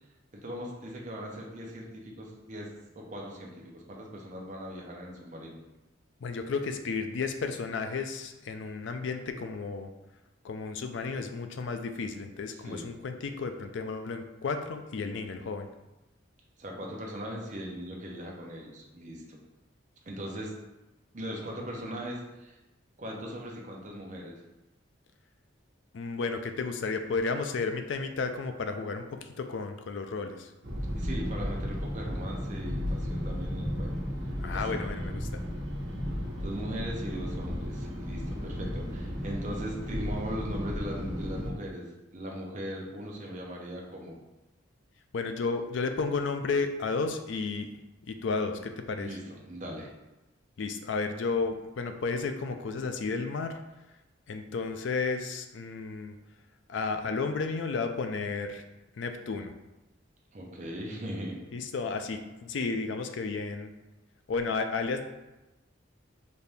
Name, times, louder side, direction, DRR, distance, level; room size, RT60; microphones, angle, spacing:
voice 1, 0.3-2.7 2.9-5.6 12.5-12.9 16.6-19.4 20.1-20.5 21.1-22.6 23.0-24.4 30.9-33.9 34.5-34.8 36.4-41.9 42.1-44.2 49.0-49.9 60.3-61.4, equal, 40° right, -2 dB, 0.8 m, -39 dB
voice 2, 6.2-9.9 10.4-15.7 25.9-30.5 34.4-35.3 45.1-47.7 48.1-49.1 50.6-53.5 54.3-56.1 56.7-58.6 59.0-59.5 61.5-63.7 64.3-65.0, left 4 dB, 65° left, 7 dB, 0.4 m, -32 dB
sound 1, 30.6-41.5, equal, 65° right, 1.1 m, -34 dB
4.1 x 2.7 x 3.4 m, 1.0 s
head